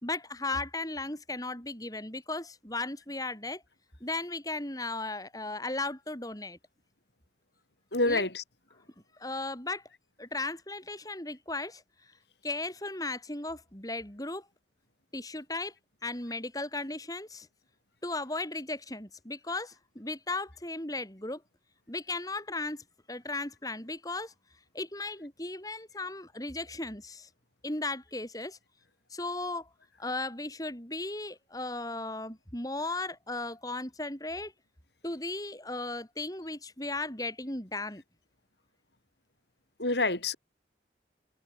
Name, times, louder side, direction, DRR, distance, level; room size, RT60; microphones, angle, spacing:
voice 1, 0.0-3.6 4.0-6.6 8.1-8.2 9.2-9.8 10.2-11.8 12.4-14.5 15.1-15.7 16.0-17.5 18.0-21.4 21.9-24.3 24.7-27.3 27.6-28.6 29.1-29.7 30.0-34.5 35.0-38.0, left 2 dB, 20° left, 5.2 m, -36 dB
voice 2, 7.9-8.4 39.8-40.3, left 2 dB, 65° left, 6.3 m, -27 dB
head